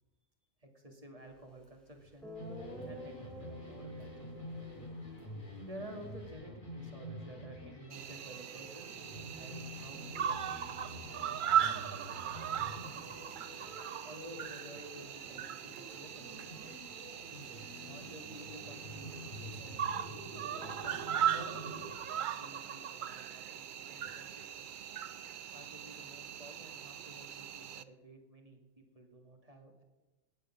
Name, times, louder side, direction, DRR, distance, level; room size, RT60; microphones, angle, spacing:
voice 1, 0.6-2.3 2.9-4.3 5.6-11.1 14.0-16.4 17.8-19.8 20.3-24.7 25.5-29.8, right 1 dB, 25° right, 2 dB, 2.1 m, -52 dB
Guitar, 1.6-1.7 2.2-6.3, equal, ahead, 3.3 m, -50 dB
sound 1, 2.3-21.9, left 1 dB, 35° left, 5.6 m, -48 dB
Cricket, 7.9-27.8, right 9 dB, 60° right, 0.5 m, -38 dB
18.5 x 6.9 x 6.0 m, 1.1 s
omnidirectional pair, 1.4 m